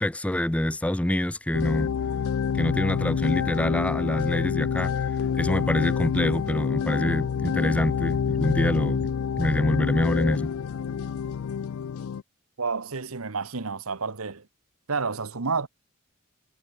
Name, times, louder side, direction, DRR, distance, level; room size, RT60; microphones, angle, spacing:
voice 1, 0.0-1.9 2.5-9.1 9.4-10.5, left 1 dB, 5° left, 0.4 m, -26 dB
sound 1, 1.5-12.2, left 7 dB, 80° left, 0.4 m, -27 dB
voice 2, 12.6-14.5 14.9-15.7, right 4 dB, 80° right, 1.2 m, -30 dB
head